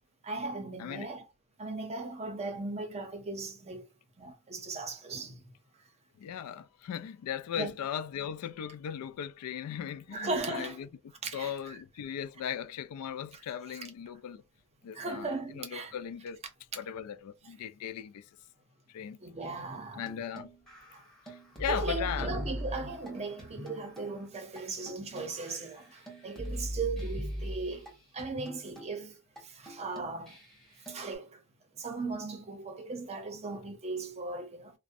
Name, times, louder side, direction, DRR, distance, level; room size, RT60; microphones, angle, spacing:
voice 1, 0.2-1.3 1.6-3.9 4.2-5.4 7.5-7.7 10.1-10.9 11.2-11.8 13.3-13.4 13.7-13.8 14.9-16.0 17.4-17.5 19.2-20.1 20.9-21.0 21.7-30.4 30.9-31.4 31.8-34.7, right 3 dB, 30° right, 0.6 m, -37 dB
voice 2, 6.2-10.9 11.3-14.4 14.8-15.3 15.5-16.4 16.8-18.2 18.9-19.2 19.9-20.5 21.6-22.4, left 9 dB, 80° left, 0.3 m, -38 dB
sound 1, 20.1-24.2 24.6-24.7 24.9-27.9 28.2-28.9 29.4-29.5 29.7-31.1, equal, ahead, 1.1 m, -40 dB
2.5 x 2.0 x 2.5 m
head